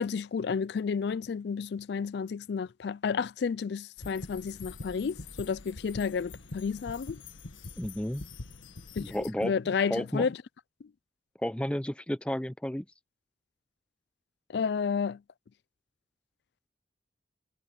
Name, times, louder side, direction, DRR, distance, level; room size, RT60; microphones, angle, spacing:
voice 1, 0.0-7.2 9.0-9.1 9.4-10.4 14.5-15.2, left 6 dB, 55° left, 0.3 m, -31 dB
sound 1, 4.0-9.3, left 3 dB, 85° left, 1.5 m, -44 dB
voice 2, 7.8-8.2 9.0-9.5 9.9-10.3 11.4-12.9, equal, 5° left, 0.5 m, -32 dB
head